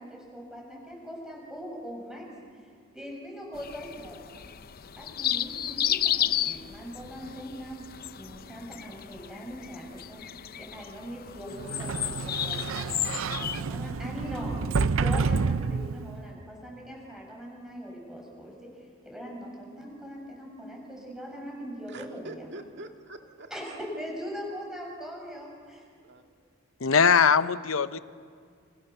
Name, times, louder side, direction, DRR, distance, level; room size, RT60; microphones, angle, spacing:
voice 1, 0.0-4.3 5.0-7.9 8.2-10.2 10.6-14.6 14.9-22.5 23.5-25.9, equal, 5° right, -2 dB, 7.4 m, -41 dB
sound 1, 3.5-13.6, left 11 dB, 45° left, 0.6 m, -33 dB
Sliding door, 11.6-16.3, right 4 dB, 85° right, 0.6 m, -29 dB
voice 2, 21.9-23.8 26.0-26.3, right 2 dB, 60° right, 4 dB, 2.2 m, -45 dB
voice 3, 26.8-28.0, left 6 dB, 85° left, 13 dB, 0.8 m, -21 dB
29.5 x 28.5 x 6.9 m, 2.1 s
head